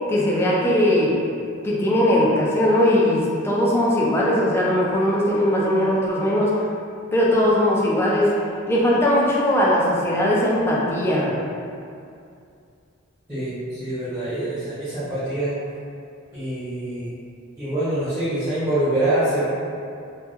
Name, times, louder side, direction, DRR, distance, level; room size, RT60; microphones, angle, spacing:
voice 1, 0.1-1.2 1.6-6.6 7.1-8.3 8.7-11.4, left 1 dB, 10° left, -5 dB, 0.3 m, -19 dB
voice 2, 13.8-15.6 16.3-17.1 17.6-19.5, right 1 dB, 15° right, -17 dB, 0.8 m, -25 dB
2.7 x 2.2 x 2.3 m, 2.4 s
head